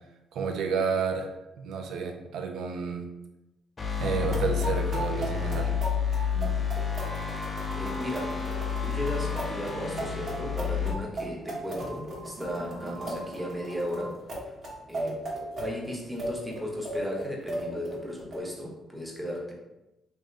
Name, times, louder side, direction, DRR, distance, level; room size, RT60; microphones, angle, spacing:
voice 1, 0.3-1.3 1.6-3.1 4.0-5.7, right 5 dB, 80° right, 5 dB, 0.4 m, -30 dB
sound 1, 3.8-10.9, left 7 dB, 30° left, 0.5 m, -30 dB
sound 2, 4.0-18.4, right 1 dB, 60° right, 0.9 m, -37 dB
voice 2, 7.7-8.4 8.8-14.2 14.9-15.3 15.6-19.5, equal, 5° right, -2 dB, 0.8 m, -35 dB
3.4 x 2.7 x 2.4 m, 0.96 s
cardioid pair, 90°, 0 cm